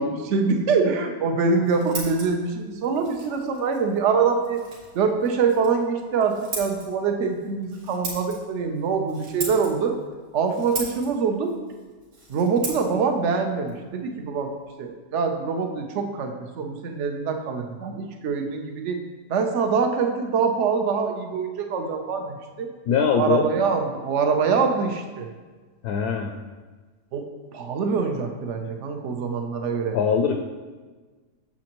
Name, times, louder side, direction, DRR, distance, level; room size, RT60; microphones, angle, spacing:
voice 1, 0.0-4.6 4.9-10.0 10.3-11.5 12.3-14.5 14.8-19.0 19.3-22.7 23.1-25.3 27.1-27.2 27.5-30.0, right 5 dB, 55° right, 5 dB, 0.9 m, -24 dB
Scissors, 1.3-14.9, right 2 dB, 80° right, 2.2 m, -40 dB
voice 2, 22.9-23.5 25.8-26.3 29.9-30.4, left 6 dB, 70° left, 4 dB, 1.0 m, -22 dB
8.6 x 7.1 x 3.0 m, 1.4 s
omnidirectional pair, 1.9 m